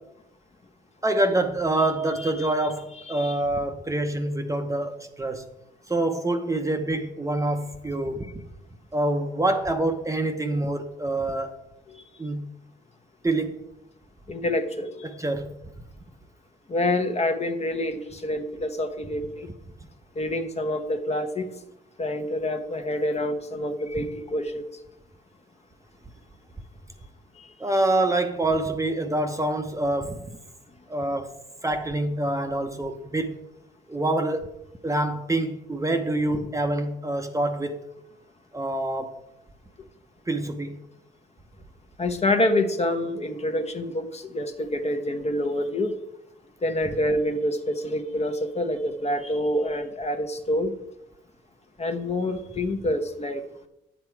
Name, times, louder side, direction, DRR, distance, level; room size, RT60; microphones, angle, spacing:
voice 1, 1.0-5.5 5.9-8.4 8.9-11.6 12.2-12.5 13.2-13.7 15.0-15.6 27.6-30.3 30.9-33.3 33.9-34.6 34.8-37.8 38.5-39.1 40.3-40.8, right 2 dB, 15° right, 0.9 m, -26 dB
voice 2, 14.3-15.1 16.7-19.5 20.1-21.5 22.0-24.6 27.4-27.5 42.0-45.9 46.6-50.7 51.8-53.4, left 1 dB, 30° left, 1.2 m, -27 dB
9.8 x 7.6 x 4.7 m
cardioid pair, 90°, 20 cm